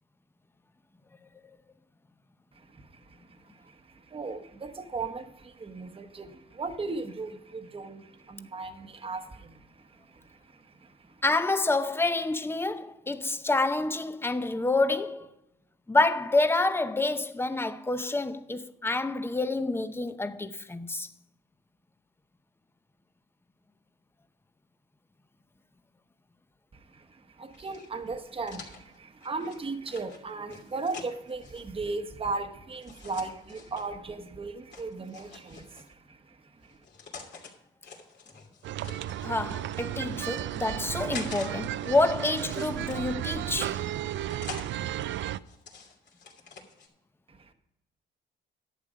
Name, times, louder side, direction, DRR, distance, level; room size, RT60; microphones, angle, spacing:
voice 1, 2.5-11.2 26.7-36.8 47.3-47.5, right 3 dB, 30° right, 1.1 m, -37 dB
voice 2, 11.2-15.3 15.9-21.1 39.2-43.8, left 2 dB, 10° left, 0.7 m, -28 dB
sound 1, 27.5-31.7 32.8-33.9 34.7-35.9 36.6-37.5 37.8-39.3 40.0-41.5 41.8-43.3 43.9-44.7 45.2-46.9, left 5 dB, 60° left, 2.8 m, -46 dB
sound 2, 38.6-45.4, right 12 dB, 70° right, 0.4 m, -34 dB
11.0 x 8.5 x 5.1 m
cardioid pair, 90°, 20 cm